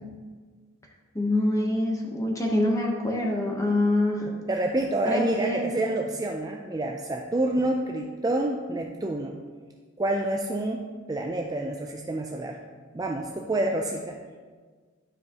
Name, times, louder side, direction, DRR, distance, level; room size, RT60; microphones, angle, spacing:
voice 1, 1.1-4.3 5.0-5.7, left 1 dB, 15° left, 0 dB, 0.9 m, -25 dB
voice 2, 4.5-9.3 10.0-10.8 11.1-12.6 12.9-14.2, right 1 dB, 15° right, 1 dB, 0.3 m, -28 dB
12.0 x 4.7 x 2.9 m, 1.5 s
head